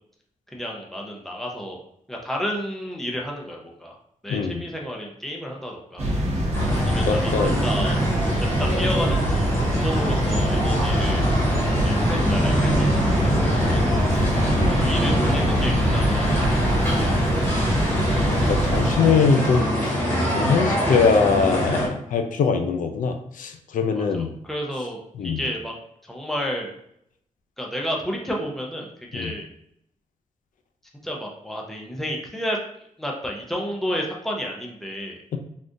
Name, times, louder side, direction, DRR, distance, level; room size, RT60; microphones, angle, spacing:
voice 1, 0.5-1.8 2.1-4.0 4.2-6.1 6.7-7.3 7.6-8.0 8.6-11.3 11.8-14.3 14.7-17.1 17.4-17.6 23.9-25.7 26.0-26.7 27.6-29.5 31.0-32.6 33.0-35.2, equal, ahead, -1 dB, 0.4 m, -31 dB
voice 2, 4.3-4.6 7.1-7.7 14.6-14.8 18.0-20.0 20.3-24.3 25.2-25.4 29.1-29.3, left 5 dB, 80° left, 6 dB, 0.4 m, -22 dB
sound 1, 6.0-19.0, equal, 55° right, 0.8 m, -24 dB
sound 2, 6.5-21.9, equal, 15° left, 0.9 m, -24 dB
sound 3, 11.7-18.2, equal, 50° left, 0.9 m, -40 dB
3.5 x 2.4 x 2.6 m, 0.72 s
wide cardioid pair, 180°, 13 cm